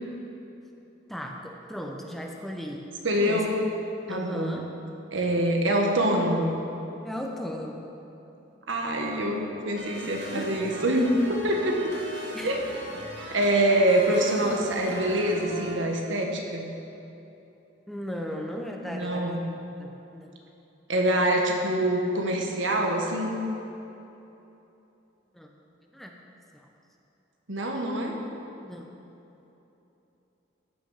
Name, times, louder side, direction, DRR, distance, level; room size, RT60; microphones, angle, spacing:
voice 1, 1.1-2.9 3.3-3.5 4.1-4.8 7.0-8.0 10.2-10.6 12.3-12.6 17.9-20.3 25.3-25.5 25.9-26.2 26.5-26.7 28.6-28.9, equal, ahead, 1 dB, 0.7 m, -37 dB
voice 2, 3.0-3.5 4.1-4.6 5.1-6.5 8.7-11.7 12.4-12.6 13.3-16.7 18.9-19.4 20.9-23.3 27.5-28.1, right 1 dB, 80° right, 1 dB, 1.5 m, -25 dB
sound 1, 9.7-15.8, equal, 60° right, 2.1 m, -40 dB
14.0 x 6.3 x 5.7 m, 3.0 s
head